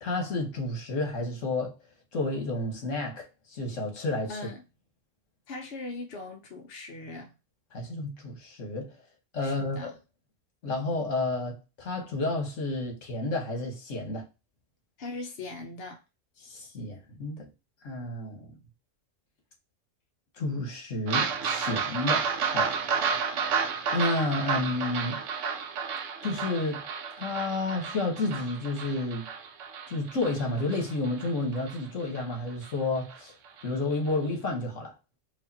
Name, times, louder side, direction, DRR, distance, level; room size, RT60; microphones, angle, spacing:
voice 1, 0.0-1.7 2.1-4.4 7.7-8.9 9.3-9.9 10.6-14.3 16.4-17.5 17.8-18.5 20.4-22.8 23.9-25.2 26.2-26.8 27.1-29.3 29.9-33.3 33.6-34.9, left 2 dB, 75° left, 1.6 m, -31 dB
voice 2, 4.3-4.6 5.5-7.3 9.4-9.9 15.0-16.0, left 2 dB, 55° left, 0.9 m, -40 dB
sound 1, 21.1-31.8 32.2-32.3 32.6-32.7 33.1-33.2, right 6 dB, 75° right, 1.0 m, -31 dB
4.9 x 2.6 x 2.7 m
omnidirectional pair, 1.3 m